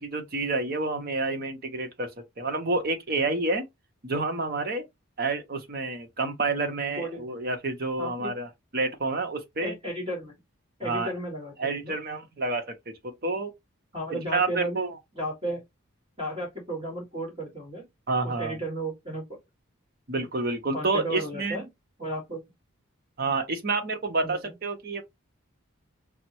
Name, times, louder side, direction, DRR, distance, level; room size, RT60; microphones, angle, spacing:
voice 1, 0.0-2.1 2.4-3.6 4.0-4.8 5.2-9.8 10.8-11.1 11.6-12.9 13.2-13.5 14.1-15.0 18.1-18.6 20.1-21.6 23.2-25.0, right 3 dB, 45° right, 0.8 m, -29 dB
voice 2, 8.0-8.3 9.6-10.3 10.8-12.0 13.9-14.8 15.2-15.6 16.2-17.9 18.2-19.3 20.7-21.7 22.0-22.4 24.2-24.5, right 1 dB, 25° right, 1.8 m, -34 dB
5.7 x 2.1 x 2.9 m
head